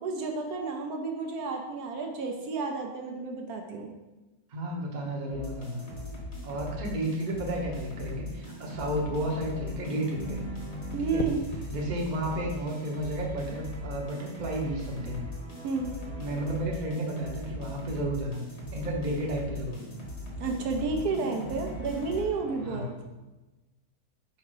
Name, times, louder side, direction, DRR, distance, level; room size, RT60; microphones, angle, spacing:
voice 1, 0.0-3.9 10.9-11.4 15.6-15.9 20.4-22.9, right 4 dB, 75° right, 2 dB, 1.1 m, -31 dB
voice 2, 4.5-5.8 6.4-10.4 11.0-11.2 11.7-15.2 16.2-18.4 18.7-19.8 22.6-22.9, right 1 dB, 35° right, -1 dB, 0.9 m, -32 dB
sound 1, 5.3-22.8, left 1 dB, 45° left, 1.7 m, -40 dB
sound 2, 11.2-11.7 13.7-14.0, left 4 dB, 70° left, 1.0 m, -36 dB
4.7 x 4.4 x 4.9 m, 1.1 s
omnidirectional pair, 1.7 m